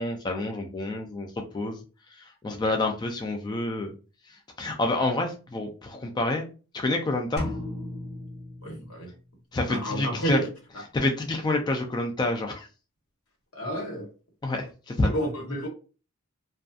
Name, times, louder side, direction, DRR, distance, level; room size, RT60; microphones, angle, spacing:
voice 1, 0.0-1.8 2.1-3.9 4.3-6.5 6.7-7.5 9.5-10.4 10.9-12.7 14.4-15.1, left 2 dB, 20° left, 3 dB, 0.3 m, -28 dB
sound 1, 7.4-9.3, left 1 dB, 45° left, 1.2 m, -36 dB
voice 2, 8.6-9.1 9.7-10.5 13.5-14.1 15.0-15.7, right 1 dB, 90° left, 0 dB, 1.1 m, -30 dB
2.6 x 2.3 x 2.4 m, 0.34 s
head